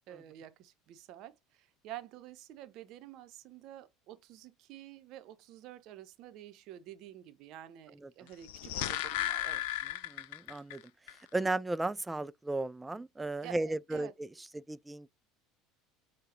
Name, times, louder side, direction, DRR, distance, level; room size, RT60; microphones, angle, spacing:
voice 1, 0.1-9.6 13.4-14.1, right 12 dB, 55° right, 0.7 m, -49 dB
sound 1, 8.3-10.8 11.1-11.2, left 13 dB, 65° left, 0.4 m, -35 dB
voice 2, 10.1-10.8 11.3-15.1, right 2 dB, 10° right, 0.3 m, -35 dB
6.4 x 2.3 x 2.9 m
hypercardioid pair, 70°, 0 cm